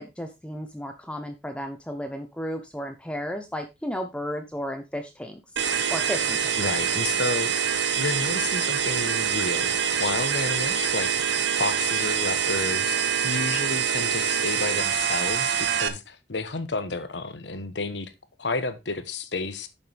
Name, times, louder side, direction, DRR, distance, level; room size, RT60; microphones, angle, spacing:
voice 1, 0.0-5.4 5.9-6.5, equal, 5° left, 0.9 m, -33 dB
sound 1, 5.6-15.9, right 8 dB, 85° right, 1.2 m, -25 dB
voice 2, 6.6-7.5 8.0-9.7 10.0-18.1 18.4-19.7, left 3 dB, 85° left, 1.2 m, -31 dB
11.0 x 6.8 x 3.5 m
head